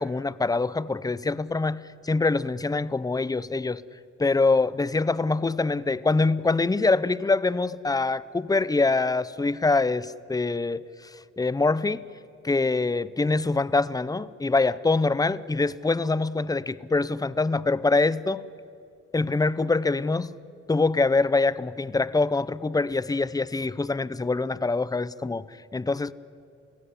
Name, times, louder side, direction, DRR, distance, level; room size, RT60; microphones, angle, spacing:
voice 1, 0.0-3.8 4.2-12.0 12.4-18.4 19.1-20.3 20.7-26.1, left 3 dB, 10° left, 0.6 m, -24 dB
28.0 x 17.0 x 10.0 m
cardioid pair, 90°, 30 cm